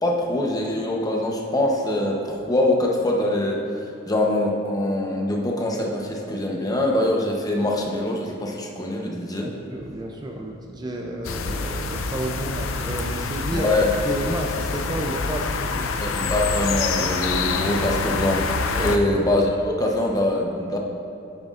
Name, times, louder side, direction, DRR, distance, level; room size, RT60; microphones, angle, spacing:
voice 1, 0.0-3.6 4.1-9.5 13.5-13.9 16.0-18.4 18.8-20.8, left 1 dB, 20° left, 0 dB, 0.8 m, -23 dB
voice 2, 9.4-13.7 14.0-16.1 18.7-19.0, right 1 dB, 20° right, 1 dB, 0.5 m, -31 dB
sound 1, 11.2-19.0, left 4 dB, 90° left, 0.5 m, -26 dB
9.4 x 9.0 x 2.5 m, 2.9 s
head